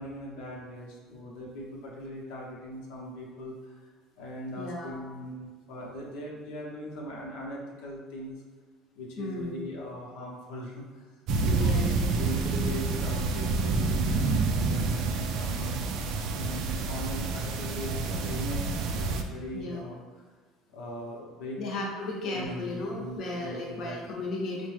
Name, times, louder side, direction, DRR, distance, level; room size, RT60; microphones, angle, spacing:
voice 1, 0.0-3.6 4.2-8.4 8.9-11.0 11.4-11.9 12.2-16.0 16.3-20.0 20.7-21.6 22.3-24.2, equal, 85° left, -2 dB, 0.8 m, -40 dB
voice 2, 4.6-5.0 9.2-9.7 11.4-12.2 19.5-19.8 21.6-24.7, left 2 dB, 45° left, -3 dB, 0.7 m, -35 dB
sound 1, 11.3-19.2, right 3 dB, 60° right, 0.3 m, -28 dB
4.5 x 2.1 x 3.2 m, 1.4 s
cardioid pair, 145°, 0 cm